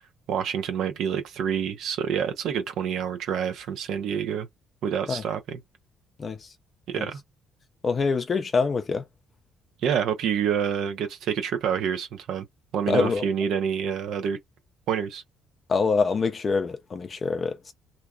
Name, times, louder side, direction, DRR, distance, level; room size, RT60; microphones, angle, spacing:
voice 1, 0.3-4.5 4.8-5.6 6.9-7.2 9.8-12.4 12.7-14.4 14.9-15.2, right 8 dB, 70° right, 0.8 m, -27 dB
voice 2, 7.8-9.0 12.9-13.3 15.7-17.7, left 4 dB, 35° left, 0.4 m, -25 dB
2.7 x 2.4 x 2.2 m
cardioid pair, 105°, 0 cm